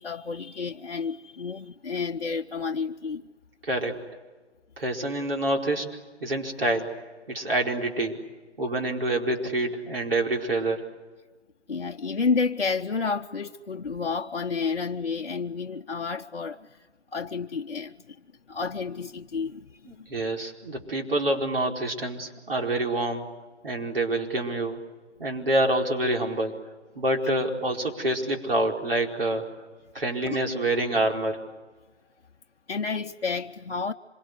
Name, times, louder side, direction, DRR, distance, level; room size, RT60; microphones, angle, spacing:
voice 1, 0.0-3.2 11.7-16.9 17.1-18.2 18.5-20.1 30.2-30.4 32.7-33.9, left 5 dB, 55° left, 0.9 m, -30 dB
voice 2, 3.6-4.0 4.8-5.9 6.2-6.9 7.3-8.2 8.6-10.8 19.9-23.3 23.6-24.8 25.2-26.6 26.9-29.5 29.9-31.4, right 1 dB, 55° right, 4.7 m, -27 dB
26.5 x 24.5 x 8.1 m
figure-of-eight pair, 165°, 35 cm